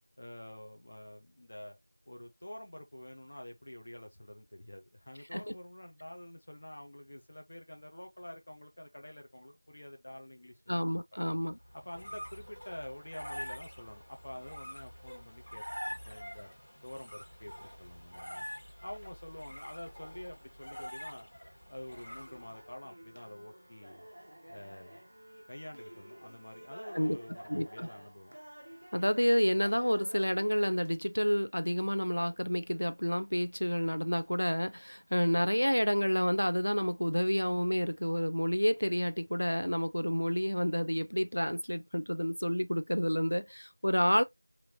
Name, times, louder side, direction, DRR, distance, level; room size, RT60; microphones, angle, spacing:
voice 1, 0.2-1.8 2.1-10.6 11.7-16.5 16.8-18.5 18.8-21.3 21.7-24.0 24.5-25.0 25.5-28.4, left 1 dB, 25° left, 0.5 m, -47 dB
voice 2, 10.7-11.6 26.9-27.2 27.5-27.9 28.9-44.2, equal, 85° left, 0.4 m, -29 dB
sound 1, 11.6-22.8, equal, 55° left, 1.5 m, -46 dB
sound 2, 21.9-30.9, right 1 dB, 45° right, 0.5 m, -51 dB
2.9 x 2.5 x 2.7 m
figure-of-eight pair, 180°, 0 cm